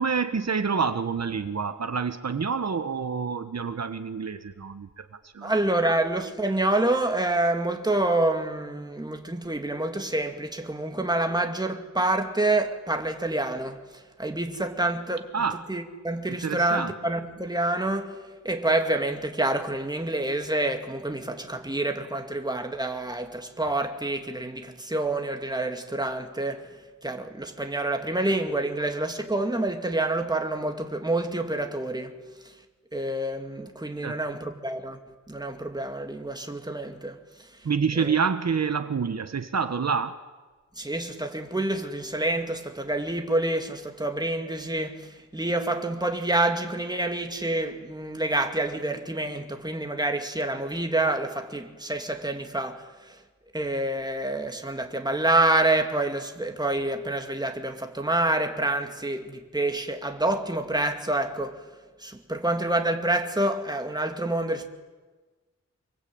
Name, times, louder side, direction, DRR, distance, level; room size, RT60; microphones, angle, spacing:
voice 1, 0.0-5.8 15.3-15.7 16.3-17.1 34.0-34.2 37.6-40.2, right 5 dB, 65° right, 1.3 m, -28 dB
voice 2, 5.4-15.3 15.7-26.8 27.0-32.2 32.9-35.0 35.3-37.2 38.0-38.1 40.8-53.2 53.5-61.7 62.0-64.7, right 2 dB, 15° right, 2.5 m, -27 dB
25.5 x 23.5 x 8.7 m
wide cardioid pair, 95°, 29 cm